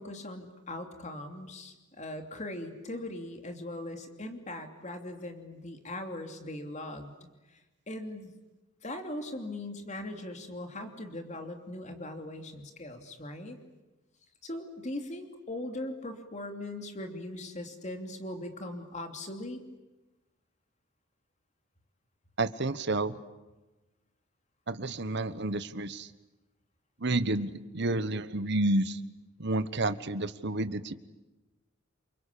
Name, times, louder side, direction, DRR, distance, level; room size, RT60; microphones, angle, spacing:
voice 1, 0.0-7.1 7.9-8.3 8.8-13.6 14.4-19.6, left 1 dB, 35° left, 5 dB, 2.9 m, -40 dB
voice 2, 22.4-23.2 24.7-26.1 27.0-29.0 29.4-30.9, right 2 dB, 55° right, 13 dB, 1.2 m, -30 dB
28.5 x 24.0 x 8.6 m, 1.1 s
head